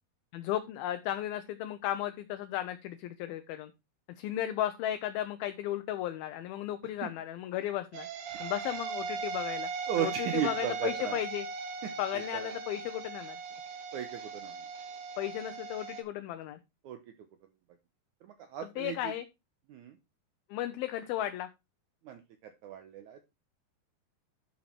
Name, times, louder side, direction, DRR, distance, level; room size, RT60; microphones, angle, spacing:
voice 1, 0.3-3.7 4.2-8.1 8.4-9.7 10.0-11.5 12.0-13.4 15.2-16.6 18.6-19.3 20.5-21.5, left 12 dB, 75° left, 9 dB, 2.4 m, -35 dB
sound 1, 7.9-16.0, right 5 dB, 65° right, 3.1 m, -39 dB
voice 2, 9.9-11.2 12.1-12.5 13.9-14.6 16.8-17.0 18.2-19.1 19.7-19.9 22.0-23.3, right 10 dB, 90° right, 8 dB, 1.7 m, -36 dB
11.5 x 5.7 x 4.4 m, 0.25 s
omnidirectional pair, 4.7 m